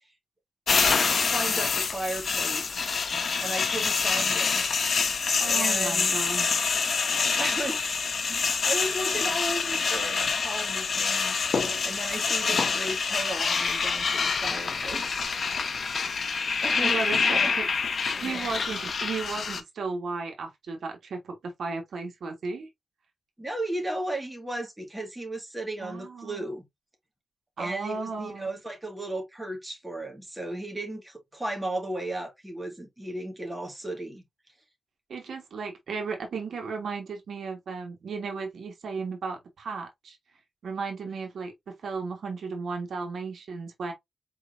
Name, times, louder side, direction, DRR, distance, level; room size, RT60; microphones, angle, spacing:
sound 1, 0.7-19.6, left 5 dB, 60° left, 0.7 m, -26 dB
voice 1, 1.2-2.8 3.4-4.6 5.4-6.2 7.4-7.9 8.3-15.3 16.3-17.5 18.2-18.5 18.7-18.9 23.4-26.7 27.6-34.2, right 1 dB, 10° right, 1.7 m, -35 dB
voice 2, 5.4-6.8 8.3-8.5 16.8-17.6 18.2-22.7 25.8-26.5 27.6-28.6 35.1-40.2 40.6-43.9, right 4 dB, 85° right, 1.4 m, -35 dB
4.8 x 3.8 x 2.5 m
wide cardioid pair, 115°, 0 cm